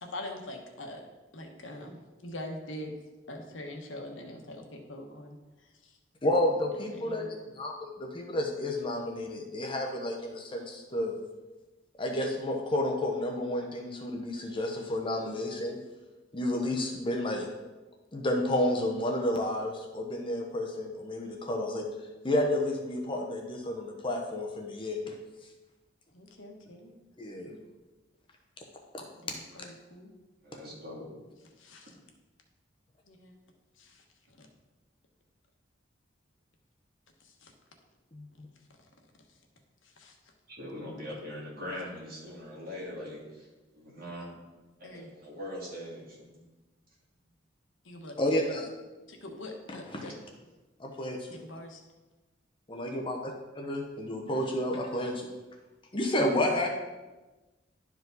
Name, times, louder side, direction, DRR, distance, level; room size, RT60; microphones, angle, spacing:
voice 1, 0.0-1.0 1.3-2.9 3.3-6.0 6.9-7.3 26.1-26.9 27.4-27.6 29.2-30.1 31.6-31.9 33.1-33.3 33.8-34.5 37.2-37.5 39.8-40.2 44.8-45.1 47.8-48.1 49.1-50.2 51.3-51.8 56.3-56.7, left 1 dB, 80° left, 2 dB, 1.2 m, -44 dB
voice 2, 6.2-7.2 7.6-11.2 12.0-15.8 16.3-17.5 18.1-21.9 22.2-25.1 27.2-27.5 28.9-29.0 38.1-38.3 48.2-48.7 50.0-50.1 50.8-51.3 52.7-55.3 55.9-56.7, left 1 dB, 25° left, 1 dB, 0.8 m, -31 dB
voice 3, 30.4-31.1 40.5-43.5 43.7-44.4 44.8-46.5, left 1 dB, 50° right, -5 dB, 2.7 m, -41 dB
11.0 x 4.9 x 4.0 m, 1.1 s
head